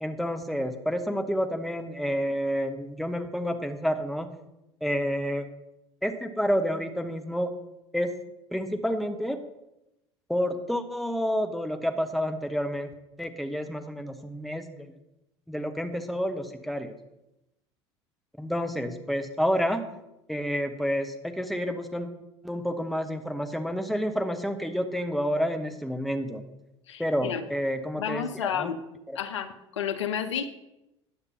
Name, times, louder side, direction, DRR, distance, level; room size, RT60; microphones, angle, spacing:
voice 1, 0.0-4.3 4.8-5.4 6.0-7.5 7.9-8.1 8.5-9.4 10.3-12.9 13.2-14.9 15.5-17.0 18.4-19.8 20.3-22.1 22.4-26.4 27.0-28.7 29.1-29.2, equal, ahead, 6 dB, 0.8 m, -29 dB
voice 2, 26.9-27.4 28.0-28.8 29.2-30.5, left 8 dB, 75° left, 9 dB, 0.7 m, -31 dB
9.8 x 6.7 x 4.3 m, 0.91 s
figure-of-eight pair, 65°, 15 cm